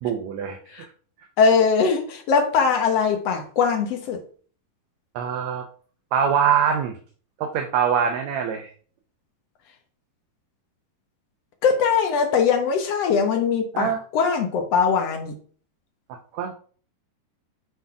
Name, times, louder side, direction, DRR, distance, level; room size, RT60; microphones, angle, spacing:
voice 1, 0.0-0.8 5.2-5.7 6.1-7.0 7.4-8.7 13.7-14.0 16.1-16.5, right 8 dB, 75° right, 4 dB, 1.7 m, -24 dB
voice 2, 1.4-4.2 11.6-15.3, left 5 dB, 65° left, 5 dB, 1.7 m, -21 dB
8.0 x 3.9 x 4.6 m, 0.43 s
omnidirectional pair, 3.9 m